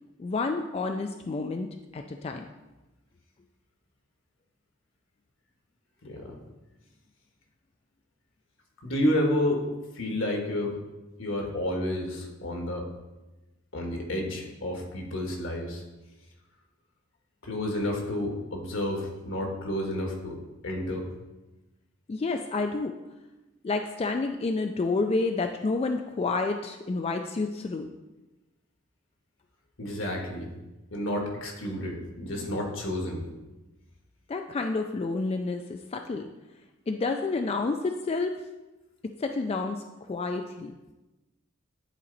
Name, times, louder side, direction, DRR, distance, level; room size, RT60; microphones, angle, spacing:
voice 1, 0.2-2.4 22.1-23.0 23.6-27.9 34.3-36.3 36.9-38.4 39.0-40.7, left 3 dB, 30° left, 5 dB, 0.3 m, -29 dB
voice 2, 6.0-6.4 8.8-9.7 9.9-10.8 11.2-12.9 13.7-15.8 17.4-20.4 20.6-21.1 29.8-30.5 30.9-33.2, left 1 dB, 75° left, 1 dB, 1.5 m, -30 dB
10.0 x 4.2 x 4.0 m, 1.1 s
head